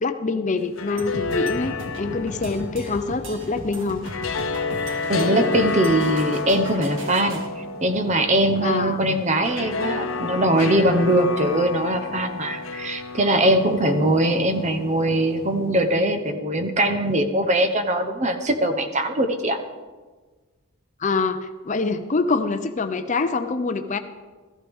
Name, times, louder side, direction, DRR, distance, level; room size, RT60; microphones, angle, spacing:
voice 1, 0.0-4.1 8.6-9.2 13.9-14.0 21.0-24.0, left 3 dB, 35° left, 9 dB, 0.5 m, -25 dB
sound 1, 0.6-15.8, left 4 dB, 65° left, 0.8 m, -31 dB
sound 2, 1.0-7.5, equal, 60° right, 1.7 m, -37 dB
voice 2, 5.1-19.6, right 1 dB, 30° right, 8 dB, 0.9 m, -21 dB
14.5 x 14.5 x 3.5 m, 1.4 s
head